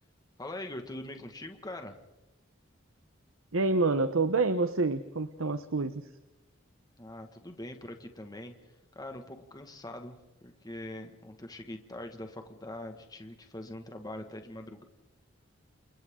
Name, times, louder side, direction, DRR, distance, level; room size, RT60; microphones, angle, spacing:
voice 1, 0.4-2.0 7.0-8.5 8.9-14.8, left 1 dB, 20° left, 5 dB, 1.9 m, -43 dB
voice 2, 3.5-6.1, right 3 dB, 85° right, 11 dB, 1.0 m, -27 dB
29.5 x 29.0 x 3.8 m, 0.95 s
head